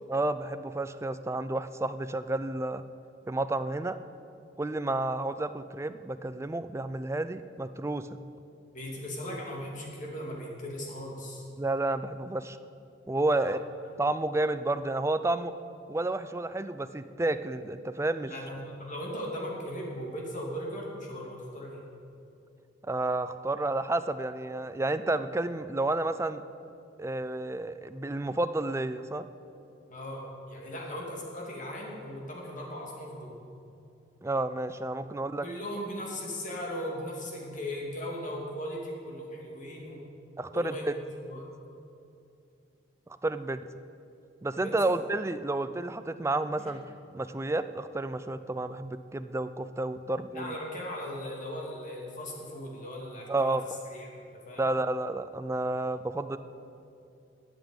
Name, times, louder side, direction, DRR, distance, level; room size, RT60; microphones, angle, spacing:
voice 1, 0.1-2.8 3.3-4.0 4.6-8.2 11.6-12.6 13.1-13.6 14.0-15.5 15.9-18.3 22.9-26.4 27.0-29.3 34.2-35.5 40.4-40.8 43.2-43.6 44.4-46.8 47.1-50.5 53.3-53.7 54.6-56.4, right 2 dB, 15° right, 12 dB, 0.4 m, -30 dB
voice 2, 8.7-11.4 13.3-13.5 18.3-21.8 29.9-33.3 35.4-40.0 40.5-41.4 44.6-45.0 50.3-53.6 53.9-54.1 54.3-54.7, equal, 40° left, -2 dB, 2.8 m, -38 dB
13.0 x 8.1 x 8.9 m, 2.7 s
head